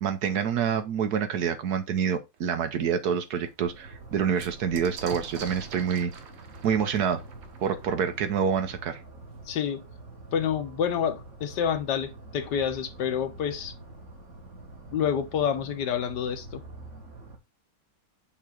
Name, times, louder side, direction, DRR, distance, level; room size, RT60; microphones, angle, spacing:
voice 1, 0.0-6.1 6.6-7.2 7.6-9.0, right 7 dB, 65° right, 1.1 m, -27 dB
sound 1, 2.3-2.4 2.9-3.0 3.3-8.8 9.8-9.9 10.1-10.7, right 6 dB, 85° right, 1.8 m, -45 dB
sound 2, 3.6-17.4, right 2 dB, 40° right, 1.9 m, -46 dB
voice 2, 9.5-9.8 10.3-13.7 14.9-16.6, left 8 dB, 70° left, 1.4 m, -28 dB
7.3 x 2.9 x 4.8 m
omnidirectional pair, 2.0 m